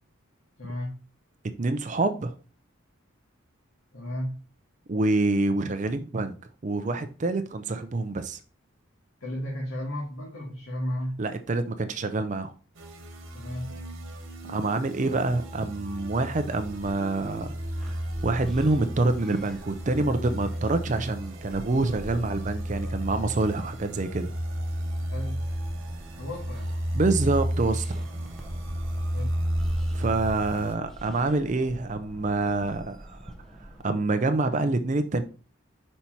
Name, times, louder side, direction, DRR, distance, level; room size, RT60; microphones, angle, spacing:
voice 1, 0.6-1.0 3.9-4.4 9.2-11.2 13.3-13.7 25.1-25.5 26.1-26.7 29.1-29.4, equal, 80° left, 1.6 m, -34 dB
voice 2, 1.6-2.3 4.9-6.4 6.6-8.4 11.2-12.5 14.5-18.0 18.2-24.3 26.9-28.0 29.9-33.3 33.8-35.2, right 2 dB, 35° right, 0.5 m, -26 dB
sound 1, 12.8-30.7, equal, 70° right, 1.4 m, -33 dB
sound 2, 16.7-33.8, equal, ahead, 0.7 m, -44 dB
5.5 x 4.3 x 4.4 m
head